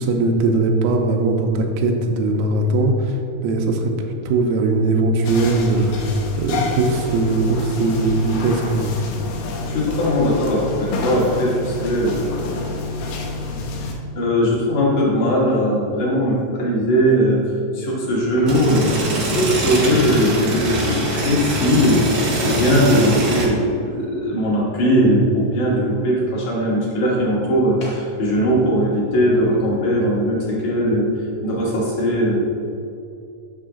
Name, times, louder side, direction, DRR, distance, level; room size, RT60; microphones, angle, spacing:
voice 1, 0.0-3.2 3.4-3.9 4.3-8.9, right 2 dB, 80° right, 3 dB, 1.9 m, -20 dB
sound 1, 5.2-13.9, left 2 dB, 80° left, 2.4 m, -28 dB
voice 2, 9.6-12.3 14.2-17.4 17.7-22.1 22.4-31.1 31.4-32.4, equal, 65° left, -4 dB, 2.5 m, -19 dB
sound 2, 18.4-23.5, right 1 dB, 50° right, 1.1 m, -23 dB
6.5 x 5.9 x 3.7 m, 2.5 s
omnidirectional pair, 3.8 m